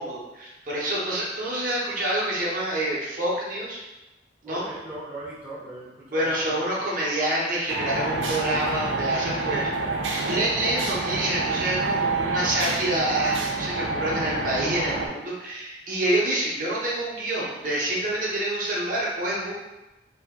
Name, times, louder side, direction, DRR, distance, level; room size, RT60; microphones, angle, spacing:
voice 1, 0.0-3.8 4.4-4.6 6.1-10.0 10.3-19.5, right 1 dB, 45° right, -5 dB, 0.7 m, -27 dB
voice 2, 4.4-6.6, right 2 dB, 10° right, -9 dB, 0.6 m, -39 dB
sound 1, 7.7-15.1, right 3 dB, 90° right, 0.5 m, -28 dB
2.7 x 2.5 x 3.5 m, 1.0 s
head